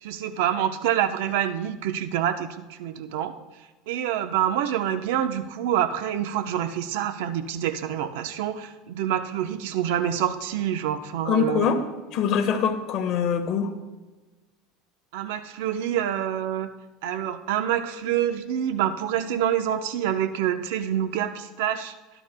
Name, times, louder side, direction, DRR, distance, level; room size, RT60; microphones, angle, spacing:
voice 1, 0.0-3.3 3.9-11.7 15.1-16.7 17.0-21.9, right 10 dB, 75° right, 9 dB, 0.8 m, -27 dB
voice 2, 11.2-11.8 12.1-13.7, left 7 dB, 45° left, 2 dB, 1.3 m, -23 dB
19.5 x 11.0 x 2.2 m, 1.2 s
supercardioid pair, 135°, 0 cm